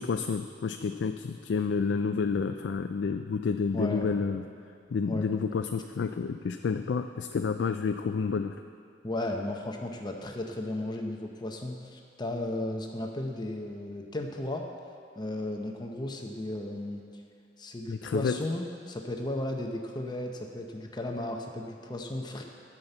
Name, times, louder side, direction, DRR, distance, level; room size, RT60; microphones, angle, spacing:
voice 1, 0.0-4.4 4.9-8.6 17.9-18.4, left 5 dB, 75° left, 7 dB, 0.4 m, -29 dB
voice 2, 3.7-4.1 5.1-5.2 9.0-14.6 15.2-17.0 17.6-22.4, left 1 dB, 25° left, 2 dB, 0.7 m, -34 dB
11.5 x 5.8 x 7.9 m, 2.3 s
head